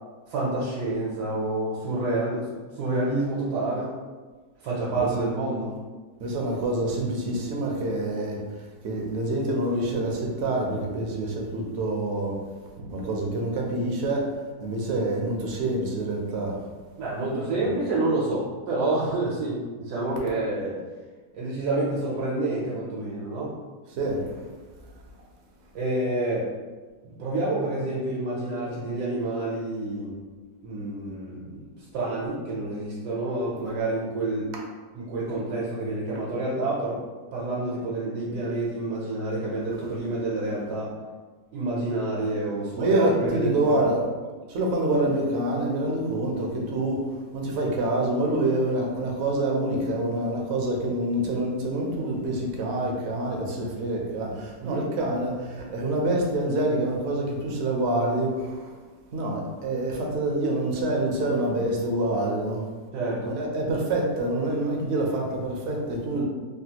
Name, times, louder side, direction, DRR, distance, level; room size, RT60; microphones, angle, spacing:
voice 1, 0.3-2.5 2.8-3.9 4.6-5.7 12.8-12.9 17.0-20.8 21.3-23.5 25.7-26.5 27.0-30.1 30.6-34.5 34.9-37.0 37.3-40.9 41.5-43.9 54.6-54.8 62.9-63.3, right 2 dB, 85° right, -6 dB, 1.3 m, -28 dB
voice 2, 6.2-8.4 8.8-12.4 12.9-14.3 14.6-16.6 17.6-17.8 24.0-24.5 42.8-44.0 44.5-47.0 47.3-58.8 59.1-62.6 63.3-66.2, right 1 dB, 65° right, -1 dB, 0.6 m, -26 dB
3.3 x 2.3 x 2.8 m, 1.4 s
omnidirectional pair, 1.7 m